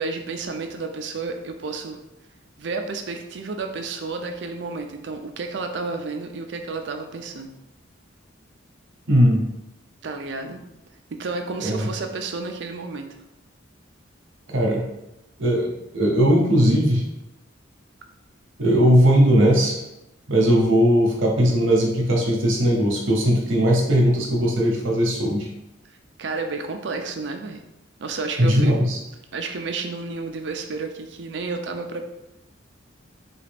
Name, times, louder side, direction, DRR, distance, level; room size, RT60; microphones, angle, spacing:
voice 1, 0.0-2.0 2.6-7.5 10.0-10.6 11.1-13.1 26.2-27.6 28.0-28.8 29.3-32.1, right 4 dB, 60° right, 5 dB, 0.4 m, -31 dB
voice 2, 9.1-9.4 11.6-11.9 14.5-14.8 15.4-17.0 18.6-19.8 20.3-25.5 28.4-29.0, equal, 85° right, 0 dB, 0.9 m, -18 dB
3.9 x 2.4 x 3.4 m, 0.89 s
head